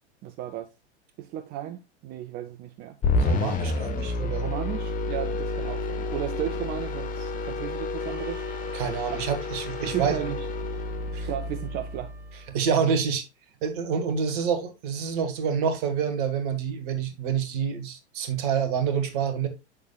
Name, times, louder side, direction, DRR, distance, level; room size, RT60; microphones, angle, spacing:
voice 1, 0.2-0.7 1.2-3.0 4.4-8.4 9.1-9.2 9.8-10.5 11.3-12.1, right 12 dB, 30° right, 0.6 m, -34 dB
sound 1, 3.0-12.4, left 3 dB, 25° left, 1.3 m, -30 dB
voice 2, 3.2-4.5 8.7-10.2 11.1-11.3 12.5-13.3 13.6-19.5, right 7 dB, 45° right, 1.6 m, -27 dB
Wind instrument woodwind instrument, 8.0-12.9, right 4 dB, 70° right, 2.0 m, -52 dB
8.4 x 6.5 x 2.3 m
figure-of-eight pair, 90°, 34 cm